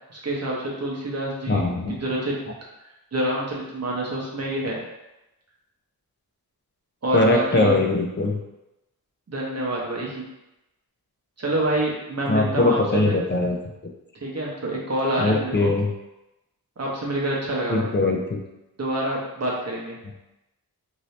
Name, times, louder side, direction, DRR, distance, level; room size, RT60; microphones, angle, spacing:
voice 1, 0.1-2.4 3.1-4.8 7.0-7.8 9.3-10.3 11.4-13.2 14.2-15.7 16.8-17.9 18.8-20.0, right 1 dB, 40° right, -4 dB, 0.9 m, -27 dB
voice 2, 1.5-1.9 7.1-8.4 12.3-13.6 15.2-15.9 17.7-18.4, left 2 dB, 30° left, 2 dB, 0.5 m, -21 dB
2.8 x 2.6 x 3.2 m, 0.96 s
wide cardioid pair, 90°, 38 cm